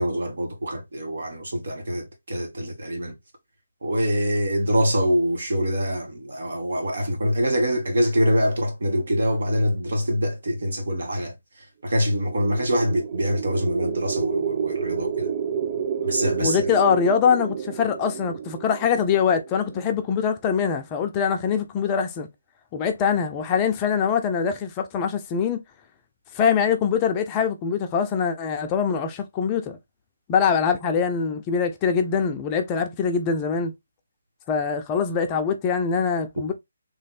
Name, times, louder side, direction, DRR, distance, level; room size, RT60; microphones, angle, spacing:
voice 1, 0.0-3.2 3.8-11.3 11.8-15.3 16.0-16.6 36.4-36.5, equal, 65° right, 1.9 m, -24 dB
Artillery Drone Burnt Orange, 12.0-20.1, right 7 dB, 35° right, 0.3 m, -30 dB
voice 2, 16.4-22.3 22.7-25.6 26.3-29.8 30.3-33.7 34.5-36.5, left 6 dB, 20° left, 0.6 m, -23 dB
3.4 x 3.1 x 4.2 m
figure-of-eight pair, 150°, 0 cm